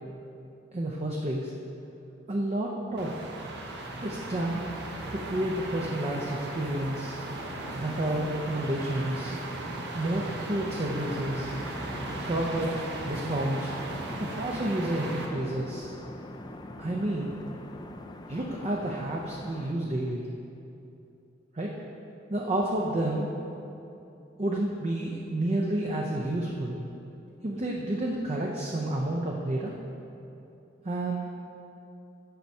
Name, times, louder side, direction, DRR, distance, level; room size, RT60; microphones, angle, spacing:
voice 1, 0.7-1.5 2.3-3.3 4.0-4.6 5.1-7.2 7.7-9.4 9.9-11.6 12.3-13.7 14.2-15.9 16.8-17.4 18.3-20.2 21.5-21.7 22.3-23.3 24.4-26.8 27.4-29.7 30.8-31.3, right 1 dB, 35° right, -2 dB, 0.5 m, -30 dB
sound 1, 3.0-15.3, right 2 dB, 65° right, 0.8 m, -37 dB
sound 2, 10.5-19.7, left 2 dB, 25° left, 0.3 m, -43 dB
6.8 x 4.6 x 5.3 m, 2.8 s
head